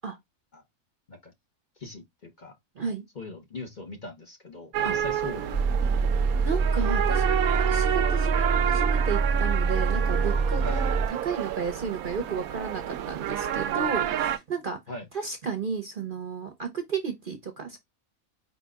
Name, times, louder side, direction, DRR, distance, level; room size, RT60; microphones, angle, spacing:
voice 1, 1.8-2.5 3.1-5.6 10.6-10.8 14.9-15.0, left 2 dB, 35° left, 1.1 m, -40 dB
sound 1, 4.7-14.4, right 10 dB, 80° right, 1.1 m, -29 dB
sound 2, 5.5-11.1, right 4 dB, 15° left, 1.1 m, -25 dB
voice 2, 6.4-14.8 15.1-17.8, right 5 dB, 45° right, 0.8 m, -33 dB
5.0 x 4.1 x 2.3 m
omnidirectional pair, 1.5 m